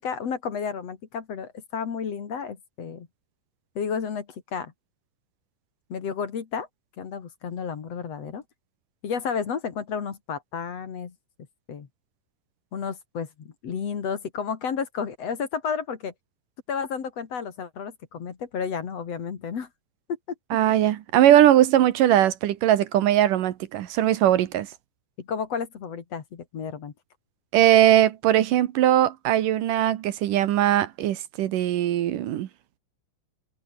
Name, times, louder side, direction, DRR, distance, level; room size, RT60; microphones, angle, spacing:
voice 1, 0.0-3.1 3.7-4.7 5.9-6.7 7.0-8.4 9.0-11.1 11.7-11.9 12.7-16.1 16.7-19.7 20.1-20.2 25.2-26.9, left 6 dB, 50° left, 3.1 m, -32 dB
voice 2, 20.5-24.7 27.5-32.5, right 12 dB, 75° right, 2.7 m, -20 dB
omnidirectional pair, 4.0 m